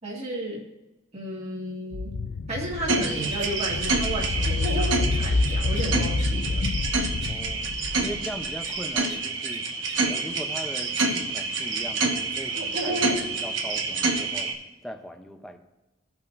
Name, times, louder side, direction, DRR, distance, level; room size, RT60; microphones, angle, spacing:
voice 1, 0.0-0.6 1.1-2.2 2.5-6.6, right 1 dB, 35° right, -4 dB, 2.0 m, -33 dB
sound 1, 1.9-9.0, left 3 dB, 85° left, 0.5 m, -28 dB
sound 2, 2.6-2.7 3.0-3.9 4.1-4.4 4.7-4.8 5.1-6.3 6.6-6.7 7.2-7.3 8.6-8.7 9.1-9.2 9.5-9.6 9.9-10.0, left 2 dB, 40° left, 2.5 m, -47 dB
sound 3, 2.9-14.5, right 3 dB, 70° right, 1.3 m, -27 dB
voice 2, 7.3-7.7 8.0-9.6 10.1-14.5 14.8-15.6, equal, ahead, 5 dB, 0.7 m, -39 dB
16.5 x 5.8 x 2.7 m, 1.0 s
head